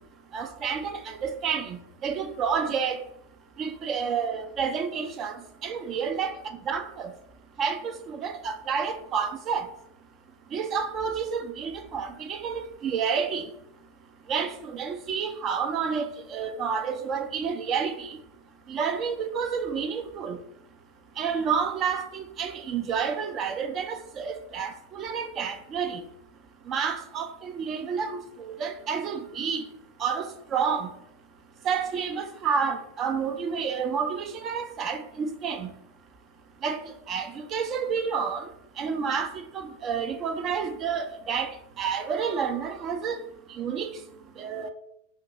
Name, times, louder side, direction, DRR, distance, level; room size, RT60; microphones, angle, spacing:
voice 1, 0.3-3.0 3.6-5.4 5.6-6.3 6.7-7.1 7.6-9.7 10.5-13.5 14.3-18.2 18.7-20.4 21.2-26.0 26.7-28.2 28.5-29.6 30.0-30.9 31.6-35.7 36.6-36.8 37.1-38.5 38.8-43.2 43.6-43.9 44.4-44.7, right 6 dB, 30° right, 0.4 m, -29 dB
4.3 x 2.3 x 3.9 m
figure-of-eight pair, 90°, 0 cm